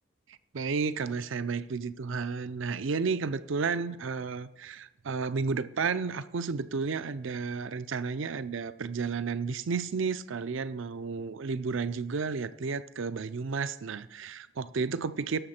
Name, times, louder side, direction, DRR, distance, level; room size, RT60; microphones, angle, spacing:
voice 1, 0.3-15.4, right 5 dB, 65° right, 14 dB, 0.5 m, -32 dB
17.5 x 6.8 x 4.3 m, 1.0 s
head